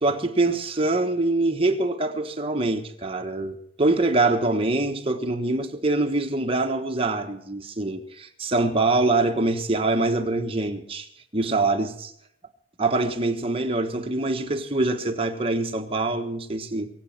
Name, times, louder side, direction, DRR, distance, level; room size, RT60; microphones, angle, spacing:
voice 1, 0.0-11.1 11.3-12.1 12.8-16.9, right 2 dB, 35° right, 1.3 m, -24 dB
23.0 x 8.4 x 5.8 m
head